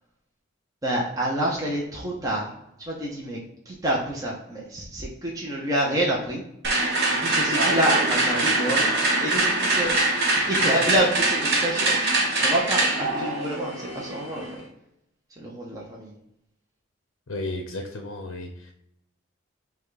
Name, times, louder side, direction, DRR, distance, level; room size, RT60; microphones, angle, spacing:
voice 1, 0.8-2.5 2.8-6.4 7.0-8.9 9.2-10.0 10.3-14.6 15.3-16.1, right 1 dB, 15° right, -3 dB, 0.7 m, -28 dB
sound 1, 6.6-14.6, right 2 dB, 55° right, 1.0 m, -23 dB
voice 2, 17.3-18.7, left 2 dB, 75° left, 4 dB, 0.6 m, -33 dB
5.8 x 2.3 x 3.9 m, 0.79 s
head